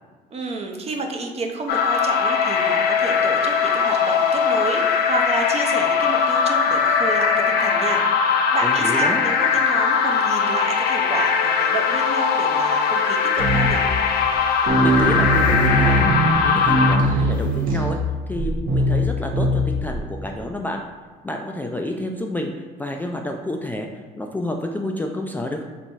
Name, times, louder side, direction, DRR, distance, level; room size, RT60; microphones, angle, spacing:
voice 1, 0.3-13.8, right 3 dB, 40° right, 3 dB, 0.6 m, -29 dB
sound 1, 1.7-17.0, left 6 dB, 70° left, 0.5 m, -20 dB
voice 2, 8.6-9.2 14.8-18.0 18.3-20.8 21.2-22.5 22.8-23.9 24.2-25.6, left 1 dB, 10° left, 2 dB, 0.3 m, -29 dB
sound 2, 13.4-14.0 14.3-14.4 14.7-20.0, right 1 dB, 55° right, 0.9 m, -21 dB
3.4 x 3.1 x 4.1 m, 1.5 s
cardioid pair, 110°, 17 cm